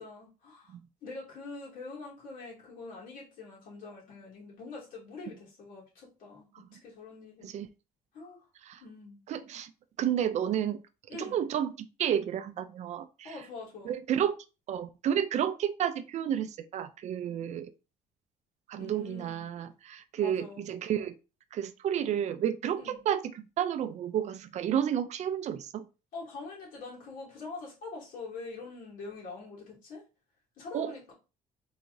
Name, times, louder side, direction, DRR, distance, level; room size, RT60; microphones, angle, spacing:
voice 1, 0.0-0.7 1.0-7.5 8.1-8.4 8.8-9.2 11.1-11.5 13.2-14.0 18.8-19.5 20.2-20.6 22.8-23.0 26.1-30.0 30.6-31.1, left 3 dB, 65° left, 2.6 m, -44 dB
voice 2, 9.3-9.7 10.0-10.8 11.1-13.3 13.8-14.4 14.7-17.7 18.7-21.1 21.5-25.9 30.7-30.9, right 9 dB, 50° right, 0.4 m, -31 dB
4.6 x 3.6 x 2.7 m
cardioid pair, 145°, 15 cm